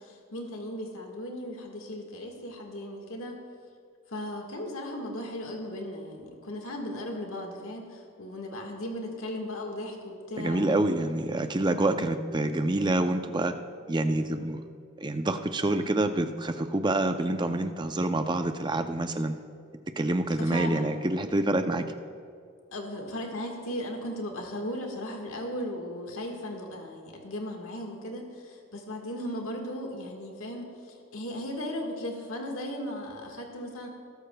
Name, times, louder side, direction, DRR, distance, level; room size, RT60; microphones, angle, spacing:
voice 1, 0.0-3.4 4.1-10.6 20.4-21.0 22.7-33.9, left 1 dB, 70° left, 2 dB, 1.6 m, -37 dB
voice 2, 10.4-13.5 13.9-14.6 15.0-19.3 20.0-21.9, right 2 dB, 20° right, 7 dB, 0.5 m, -27 dB
20.0 x 13.0 x 2.3 m, 2.4 s
head